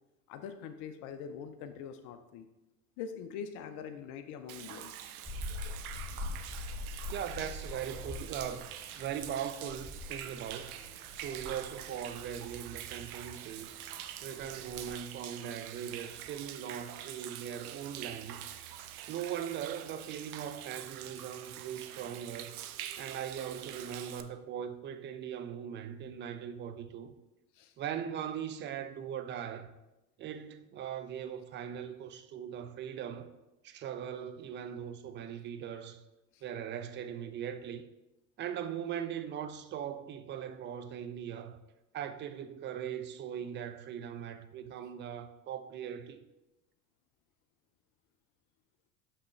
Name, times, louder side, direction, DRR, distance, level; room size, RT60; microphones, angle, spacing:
voice 1, 0.3-2.5 3.0-4.9 5.2-5.4 27.5-27.7 36.3-36.4, left 7 dB, 45° left, 0.5 m, -43 dB
Human voice / Rain / Stream, 4.5-24.2, right 11 dB, 70° right, 0.6 m, -45 dB
sound 1, 5.2-14.9, left 3 dB, 10° left, 0.8 m, -45 dB
voice 2, 7.1-8.7 9.0-10.7 11.1-13.8 14.2-18.4 19.1-22.7 23.0-27.1 27.8-29.7 30.2-33.3 33.6-36.0 36.4-37.8 38.4-41.6 41.9-46.2, right 9 dB, 25° right, 0.4 m, -40 dB
5.8 x 5.8 x 3.2 m
hypercardioid pair, 75°, 46 cm